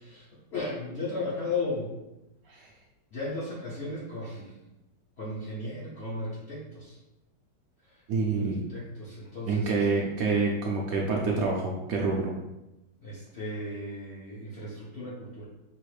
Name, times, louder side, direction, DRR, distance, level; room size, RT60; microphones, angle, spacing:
voice 1, 0.0-1.9 3.1-4.5 5.2-7.0 7.9-8.0 8.3-9.8 13.0-15.5, left 2 dB, 50° left, -6 dB, 0.8 m, -35 dB
voice 2, 8.1-8.6 9.5-12.3, right 4 dB, 70° right, -2 dB, 0.9 m, -27 dB
5.5 x 2.5 x 3.2 m, 0.95 s
omnidirectional pair, 1.9 m